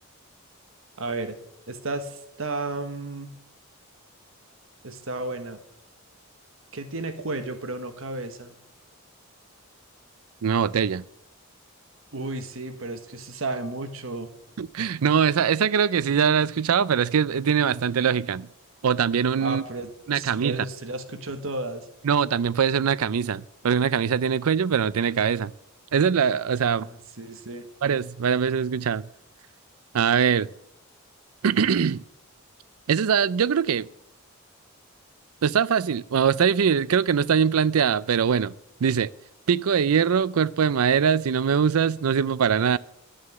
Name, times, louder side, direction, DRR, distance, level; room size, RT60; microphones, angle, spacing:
voice 1, 1.0-1.3 1.7-3.3 4.8-5.6 6.7-8.5 12.1-14.3 19.4-21.9 26.6-27.7, right 2 dB, 65° right, 1.3 m, -33 dB
voice 2, 10.4-11.0 14.6-18.5 18.8-19.6 20.1-20.6 22.0-25.5 25.9-26.9 27.8-29.1 29.9-30.5 31.4-32.0 32.9-33.9 35.4-38.5 38.8-39.1 39.5-42.8, right 7 dB, 80° right, 0.4 m, -22 dB
11.0 x 6.5 x 9.2 m
head